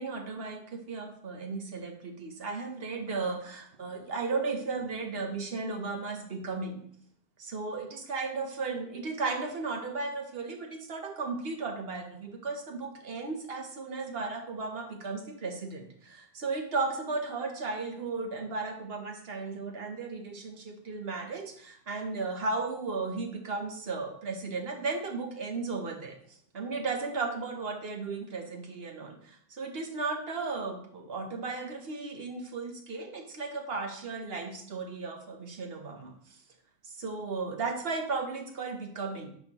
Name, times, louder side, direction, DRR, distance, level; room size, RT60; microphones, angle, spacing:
voice 1, 0.0-6.8 7.4-26.2 26.5-36.2 36.8-39.3, right 3 dB, 60° right, 4 dB, 1.1 m, -35 dB
10.0 x 4.0 x 3.0 m, 0.63 s
omnidirectional pair, 1.2 m